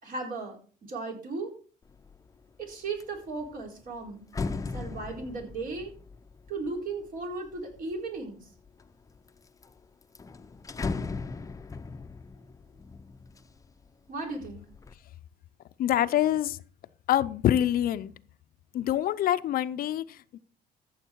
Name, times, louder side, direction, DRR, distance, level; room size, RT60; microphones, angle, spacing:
voice 1, 0.0-1.5 2.6-4.2 4.7-5.9 6.5-8.5 14.1-14.6, right 3 dB, 55° right, 4.3 m, -36 dB
sound 1, 1.9-2.3 2.7-8.0 8.6-9.3 9.6-9.7 10.0-13.9 14.3-14.9, left 4 dB, 20° left, 0.7 m, -38 dB
voice 2, 15.8-16.6 17.1-18.1 18.7-20.4, left 11 dB, 60° left, 0.6 m, -26 dB
14.0 x 7.3 x 4.6 m
cardioid pair, 110°, 17 cm